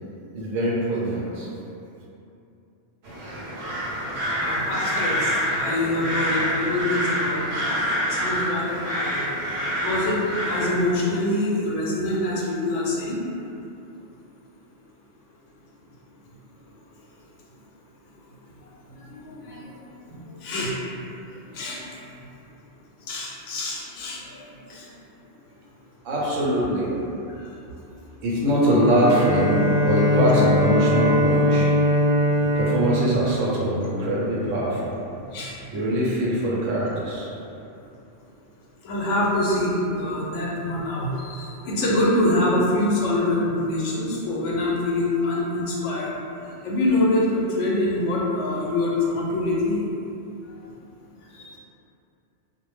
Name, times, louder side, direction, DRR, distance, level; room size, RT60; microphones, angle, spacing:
voice 1, 0.3-1.5 26.0-26.9 28.2-31.7 32.5-34.9 35.7-37.3, equal, 90° right, -5 dB, 1.0 m, -22 dB
sound 1, 3.0-10.9, equal, 65° right, 0.8 m, -27 dB
voice 2, 4.4-7.8 8.1-13.2 18.6-20.8 21.3-22.3 23.1-24.9 27.3-27.5 35.3-35.7 38.8-46.1 46.4-49.8 50.5-50.6 51.3-51.6, left 1 dB, 80° left, -4 dB, 0.9 m, -25 dB
Bowed string instrument, 28.7-34.0, equal, 30° left, 0.5 m, -22 dB
2.4 x 2.1 x 3.1 m, 2.7 s
omnidirectional pair, 1.3 m